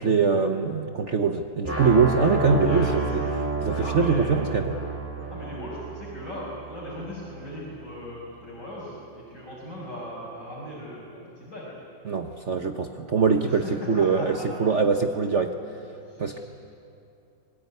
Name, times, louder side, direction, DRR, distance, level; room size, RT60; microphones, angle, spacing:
voice 1, 0.0-3.2 3.6-4.8 12.1-15.5 16.2-16.4, right 5 dB, 45° right, 6 dB, 1.1 m, -23 dB
sound 1, 1.6-7.6, right 3 dB, 5° right, 3.8 m, -31 dB
voice 2, 2.5-2.9 3.8-4.4 5.3-11.8 13.5-14.8 16.0-16.4, equal, 40° left, -8 dB, 6.2 m, -38 dB
26.0 x 20.5 x 9.6 m, 2.7 s
omnidirectional pair, 2.1 m